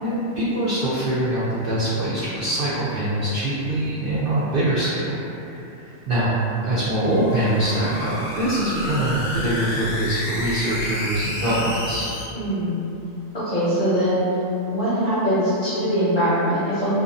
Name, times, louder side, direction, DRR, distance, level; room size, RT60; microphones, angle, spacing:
voice 1, 0.0-5.2 5.7-12.1, right 1 dB, 70° right, -10 dB, 0.5 m, -23 dB
sound 1, 6.8-12.2, left 1 dB, 85° left, 1.0 m, -30 dB
voice 2, 12.3-12.8 13.3-14.2 14.7-17.0, equal, 45° left, -13 dB, 0.6 m, -22 dB
2.5 x 2.3 x 2.5 m, 2.8 s
omnidirectional pair, 1.4 m